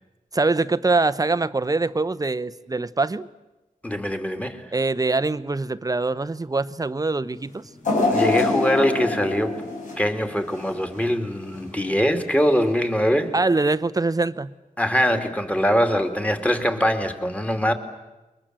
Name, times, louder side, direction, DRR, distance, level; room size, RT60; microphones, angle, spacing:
voice 1, 0.3-3.3 4.7-7.7 13.3-14.5, right 3 dB, 25° right, 14 dB, 0.8 m, -23 dB
voice 2, 3.8-4.6 8.1-9.6 10.0-13.3 14.8-17.7, equal, 10° left, 5 dB, 2.6 m, -22 dB
sound 1, 7.8-11.0 11.4-11.6 12.6-12.7, left 3 dB, 65° left, 7.6 m, -25 dB
29.0 x 23.0 x 7.6 m, 1.1 s
wide cardioid pair, 115°, 14 cm